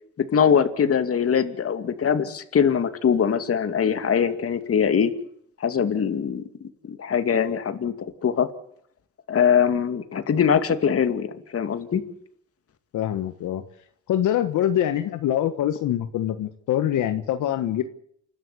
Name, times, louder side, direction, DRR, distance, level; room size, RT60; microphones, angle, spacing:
voice 1, 0.2-5.1 5.6-6.4 6.8-7.9 8.2-8.5 9.3-12.0, left 7 dB, 50° left, 9 dB, 2.5 m, -22 dB
voice 2, 12.9-13.6 14.1-17.8, left 11 dB, 80° left, 8 dB, 1.6 m, -24 dB
29.0 x 12.5 x 8.5 m, 0.68 s
cardioid pair, 90°, 30 cm